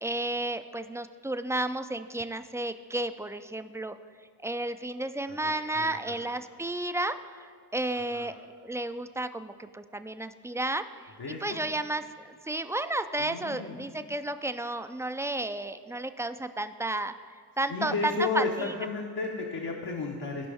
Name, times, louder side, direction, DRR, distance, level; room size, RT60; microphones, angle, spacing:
voice 1, 0.0-3.9 4.4-8.4 8.6-11.1 11.4-12.0 12.5-18.7, right 2 dB, 5° right, 10 dB, 0.3 m, -32 dB
voice 2, 5.3-6.2 7.9-8.3 11.2-11.6 13.2-13.8 17.7-20.5, left 4 dB, 65° left, -1 dB, 1.0 m, -33 dB
15.5 x 5.2 x 3.5 m, 2.2 s
cardioid pair, 50°, 41 cm